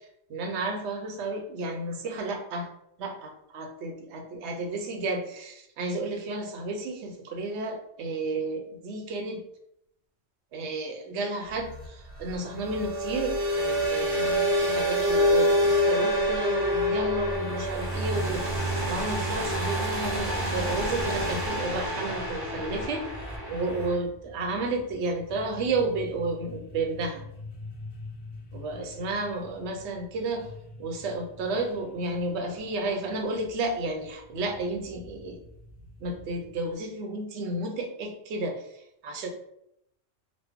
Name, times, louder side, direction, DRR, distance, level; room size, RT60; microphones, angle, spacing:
voice 1, 0.3-2.7 3.0-9.4 10.5-23.1 23.5-27.2 28.5-30.5 30.8-35.4 36.0-38.7 39.0-39.3, right 2 dB, 85° right, 4 dB, 0.9 m, -32 dB
sound 1, 11.5-23.9, equal, 35° right, 0.6 m, -27 dB
sound 2, 20.0-36.8, left 1 dB, 50° left, 0.5 m, -46 dB
3.0 x 2.1 x 3.4 m, 0.77 s
omnidirectional pair, 1.1 m